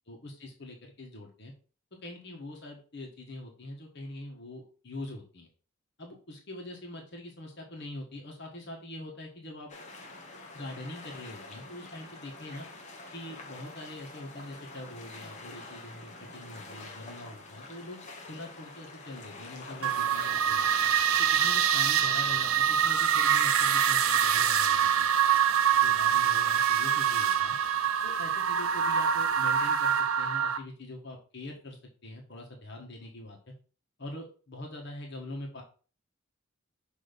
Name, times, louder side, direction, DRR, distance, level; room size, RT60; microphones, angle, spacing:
voice 1, 0.1-1.5 2.0-5.5 6.0-9.7 10.5-12.6 13.1-20.6 21.2-25.1 25.8-27.6 28.0-33.5 34.0-35.6, left 1 dB, 55° left, 0 dB, 1.4 m, -43 dB
sound 1, 9.7-20.9, left 2 dB, 35° left, 1.1 m, -46 dB
sound 2, 19.8-30.6, right 8 dB, 85° right, 0.6 m, -25 dB
6.2 x 3.1 x 5.2 m, 0.38 s
head